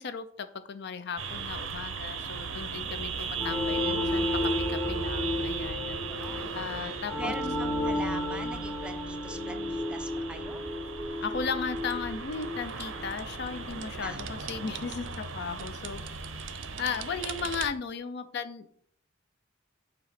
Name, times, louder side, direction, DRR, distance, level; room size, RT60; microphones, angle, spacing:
voice 1, 0.0-4.3 4.7-6.0 6.5-7.3 11.2-16.0 16.8-18.7, left 5 dB, 55° left, 11 dB, 0.5 m, -36 dB
sound 1, 1.2-17.7, right 5 dB, 85° right, 0.8 m, -37 dB
sound 2, 3.4-13.8, left 1 dB, 25° left, 0.8 m, -33 dB
voice 2, 6.1-10.7 14.0-14.2, right 1 dB, 5° right, 7 dB, 0.4 m, -42 dB
sound 3, 11.8-13.9 14.2-17.9, right 10 dB, 65° right, 0.5 m, -44 dB
6.7 x 3.0 x 4.9 m, 0.63 s
head